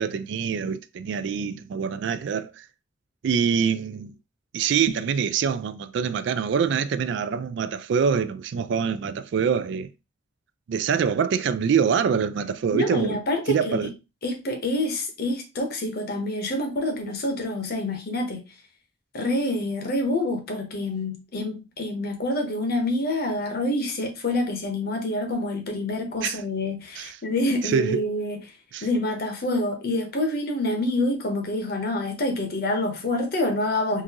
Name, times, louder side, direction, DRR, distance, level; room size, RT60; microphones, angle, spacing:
voice 1, 0.0-2.6 3.2-4.1 4.5-9.9 10.7-13.2 13.5-13.9 26.2-26.4 27.0-27.1 27.6-28.0 28.7-28.9, right 6 dB, 65° right, 0.3 m, -25 dB
voice 2, 12.7-13.9 14.2-18.4 19.1-28.4 28.8-34.0, left 1 dB, 50° left, 0.9 m, -27 dB
3.7 x 2.6 x 2.8 m
head